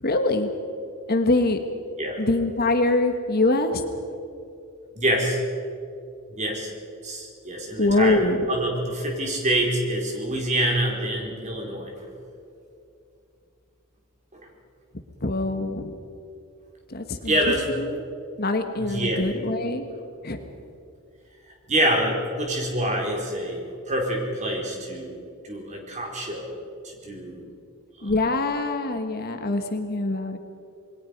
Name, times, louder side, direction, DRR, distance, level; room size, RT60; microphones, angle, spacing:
voice 1, 0.0-0.5 1.1-1.6 2.2-3.8 7.8-8.5 15.2-16.0 16.9-17.3 17.8-18.1 18.4-19.8 20.2-20.4 28.0-30.4, left 2 dB, 45° left, 6 dB, 1.5 m, -24 dB
voice 2, 4.9-5.4 6.3-6.7 7.0-11.9 14.3-14.4 17.2-17.7 18.7-19.3 21.7-26.6 26.8-27.5 28.0-28.1, right 1 dB, 30° right, 0 dB, 4.5 m, -26 dB
28.0 x 21.5 x 5.3 m, 2.6 s
head